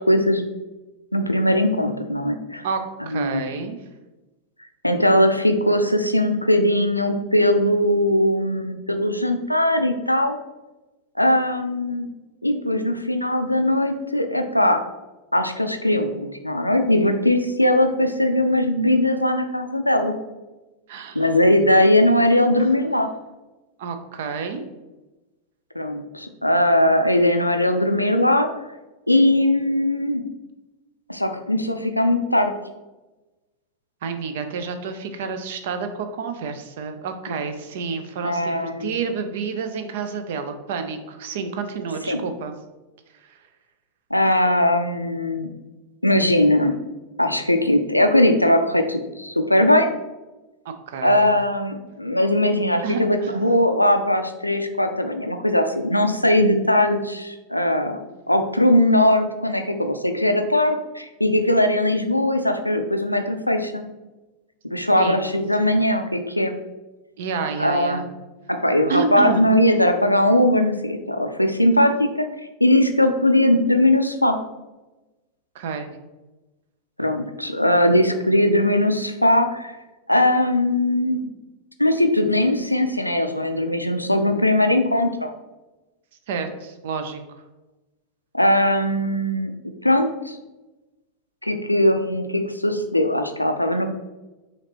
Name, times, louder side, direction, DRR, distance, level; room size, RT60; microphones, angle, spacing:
voice 1, 0.1-0.4 1.1-2.6 3.0-3.5 4.8-10.4 11.2-12.1 12.4-14.8 15.3-20.1 21.1-23.1 25.8-28.5 29.1-30.2 31.1-32.5 37.3-37.4 38.2-38.9 42.1-42.2 44.1-45.5 46.0-46.7 47.2-49.9 51.0-58.0 58.3-63.8 64.6-66.5 67.6-68.1 68.5-72.3 72.6-74.4 77.0-79.7 80.1-81.2 81.8-85.3 88.3-89.5 89.8-90.4 91.4-93.9, left 1 dB, 90° left, 6 dB, 0.4 m, -20 dB
voice 2, 2.6-3.8 20.9-21.3 23.8-24.6 34.0-42.5 50.7-51.3 52.8-53.4 65.0-65.2 65.6-65.7 67.2-68.1 68.9-69.4 75.5-75.9 86.3-87.2, right 5 dB, 55° right, 8 dB, 0.5 m, -29 dB
5.8 x 2.9 x 2.8 m, 1.1 s
figure-of-eight pair, 90°, 0 cm